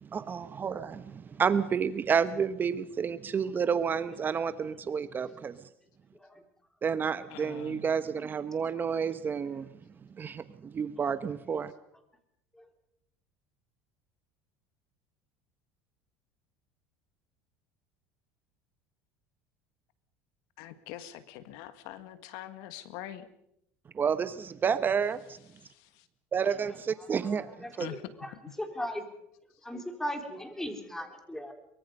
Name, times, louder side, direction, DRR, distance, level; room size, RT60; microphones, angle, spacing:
voice 1, 0.0-5.6 6.8-9.7 10.2-11.7 23.9-25.4 26.3-27.9, right 6 dB, 30° right, 13 dB, 1.0 m, -30 dB
voice 2, 7.3-7.9 20.6-23.3 25.6-26.1 27.8-28.1, left 12 dB, 75° left, 12 dB, 1.7 m, -44 dB
voice 3, 27.6-28.3 28.6-29.0 29.6-31.5, equal, 5° left, 6 dB, 3.6 m, -37 dB
23.5 x 22.5 x 5.4 m, 0.76 s
supercardioid pair, 110°, 7 cm